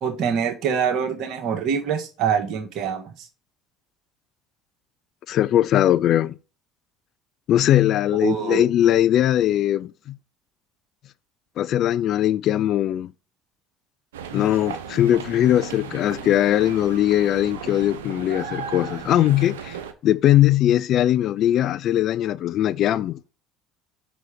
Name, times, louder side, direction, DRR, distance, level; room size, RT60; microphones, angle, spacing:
voice 1, 0.0-3.3 8.2-8.7, right 7 dB, 60° right, 1.8 m, -25 dB
voice 2, 5.3-6.3 7.5-10.2 11.6-13.1 14.3-19.8 20.0-23.2, left 12 dB, 55° left, 0.3 m, -20 dB
sound 1, 14.1-19.9, right 7 dB, 85° right, 0.7 m, -36 dB
6.1 x 4.0 x 5.1 m
hypercardioid pair, 70°, 0 cm